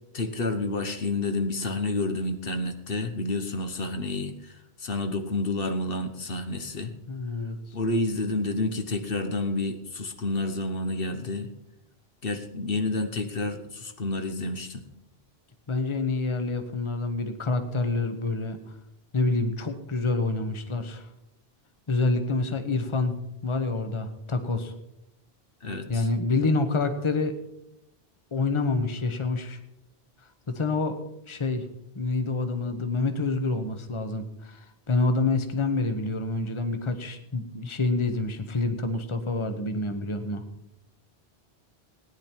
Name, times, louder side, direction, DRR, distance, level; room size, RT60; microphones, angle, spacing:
voice 1, 0.1-6.9 7.7-11.5 12.2-14.8 25.6-26.1, left 2 dB, 60° left, 7 dB, 1.2 m, -29 dB
voice 2, 7.1-7.6 15.7-18.6 19.1-21.1 21.9-23.2 23.4-24.7 25.9-27.3 28.3-29.6 30.5-31.0 31.3-31.6 31.9-40.4, left 3 dB, 30° left, 8 dB, 1.1 m, -27 dB
17.5 x 10.0 x 4.5 m, 0.86 s
omnidirectional pair, 1.1 m